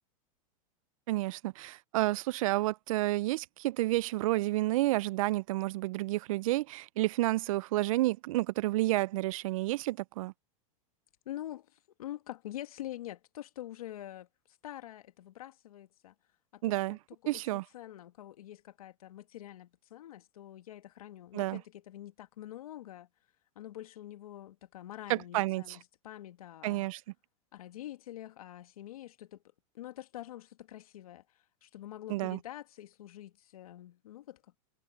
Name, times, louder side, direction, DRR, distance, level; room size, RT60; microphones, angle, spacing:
voice 1, 1.1-10.3 16.6-17.0 17.3-17.6 21.3-21.6 25.1-25.8 26.6-27.0 32.1-32.4, right 17 dB, 70° right, 0.4 m, -30 dB
voice 2, 11.3-14.3 14.6-16.1 16.5-23.1 23.6-26.9 27.5-29.4 29.7-31.2 31.6-34.6, left 13 dB, 85° left, 1.8 m, -46 dB
hypercardioid pair, 125°, 18 cm